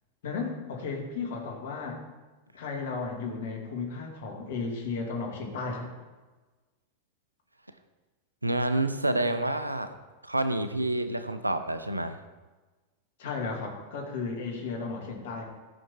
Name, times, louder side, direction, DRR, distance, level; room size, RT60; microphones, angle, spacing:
voice 1, 0.2-2.0 2.5-5.9 13.2-15.4, left 4 dB, 55° left, 1 dB, 2.4 m, -34 dB
voice 2, 8.4-9.9 10.2-12.2, right 1 dB, 85° right, 10 dB, 0.7 m, -28 dB
13.5 x 6.0 x 4.5 m, 1.3 s
figure-of-eight pair, 90°, 0 cm